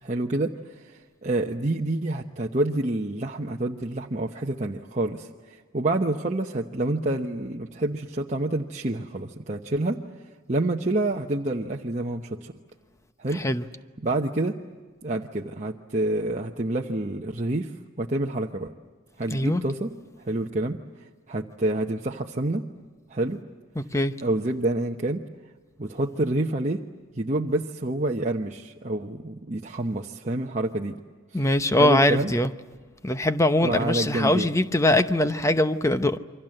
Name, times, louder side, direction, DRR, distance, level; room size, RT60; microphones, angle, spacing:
voice 1, 0.0-10.0 10.5-12.5 13.2-13.4 14.0-14.6 15.0-17.7 18.0-18.7 19.2-19.9 20.3-20.8 21.3-22.7 23.1-23.4 24.2-25.2 25.8-26.8 27.1-31.0 31.8-32.3 33.6-34.5, right 2 dB, 35° right, 1.0 m, -28 dB
voice 2, 13.3-13.6 19.3-19.6 23.7-24.1 31.3-32.5 33.0-36.2, left 1 dB, 15° left, 0.8 m, -22 dB
28.5 x 24.0 x 7.8 m
head